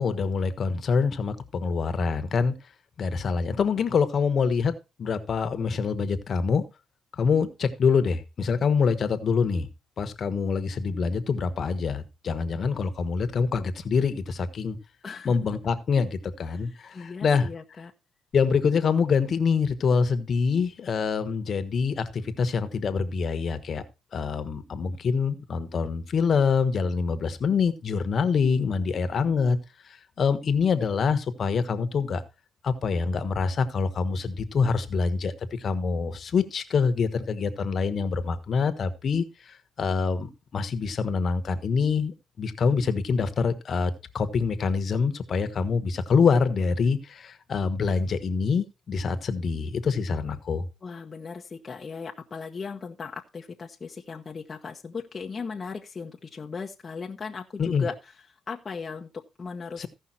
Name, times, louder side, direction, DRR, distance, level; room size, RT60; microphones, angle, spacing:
voice 1, 0.0-2.5 3.0-6.6 7.2-9.7 10.0-14.8 15.2-17.5 18.3-23.8 24.1-29.6 30.2-32.2 32.6-50.7 57.6-57.8 59.8-59.9, left 5 dB, 50° left, 10 dB, 1.3 m, -25 dB
voice 2, 15.0-15.4 16.5-17.9 50.8-58.1 58.5-59.9, left 5 dB, 35° left, 1 dB, 1.0 m, -37 dB
15.5 x 5.6 x 4.3 m, 0.28 s
cardioid pair, 90°, 0 cm